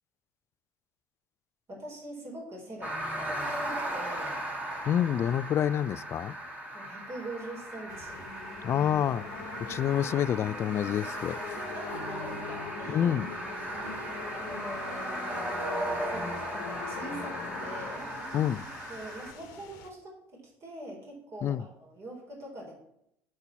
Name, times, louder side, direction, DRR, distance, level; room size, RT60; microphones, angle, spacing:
voice 1, 1.7-4.4 6.7-8.3 9.3-9.5 11.7-13.1 13.8-15.2 16.0-18.1 18.9-22.7, right 1 dB, 40° right, 4.0 m, -43 dB
sound 1, 2.8-19.3, right 1 dB, 20° right, 3.2 m, -37 dB
voice 2, 4.9-6.3 8.6-9.2 9.7-11.4 12.9-13.3 18.3-18.6 21.4-21.7, left 10 dB, 40° left, 0.3 m, -27 dB
sound 2, 7.9-19.9, left 6 dB, 60° left, 1.1 m, -43 dB
sound 3, 11.4-16.9, equal, 80° right, 2.0 m, -47 dB
8.0 x 5.4 x 7.1 m
figure-of-eight pair, 60°, 7 cm